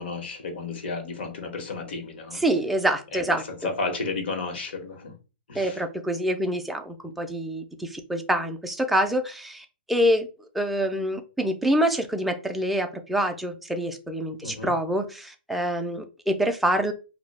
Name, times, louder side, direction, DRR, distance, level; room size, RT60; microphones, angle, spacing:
voice 1, 0.0-2.4 3.1-3.2 3.5-5.1 5.5-5.8 14.4-14.7, left 3 dB, 75° left, 5 dB, 0.9 m, -32 dB
voice 2, 2.3-3.7 5.5-10.3 10.5-16.9, equal, ahead, 4 dB, 0.3 m, -26 dB
2.2 x 2.0 x 3.2 m, 0.32 s
hypercardioid pair, 150°, 6 cm